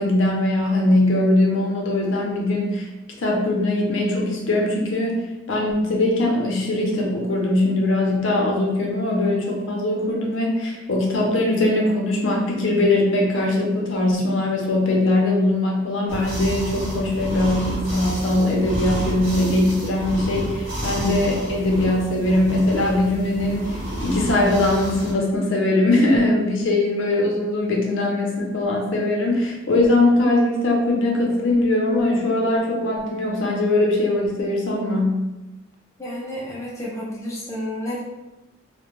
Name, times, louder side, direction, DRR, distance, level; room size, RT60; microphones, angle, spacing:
voice 1, 0.0-2.9 3.2-5.2 5.5-35.2, left 1 dB, 70° left, -1 dB, 0.5 m, -21 dB
sound 1, 16.1-25.1, equal, 45° right, 0.9 m, -30 dB
voice 2, 36.0-38.0, left 1 dB, 15° left, -6 dB, 0.5 m, -31 dB
2.1 x 2.1 x 3.0 m, 1.0 s
head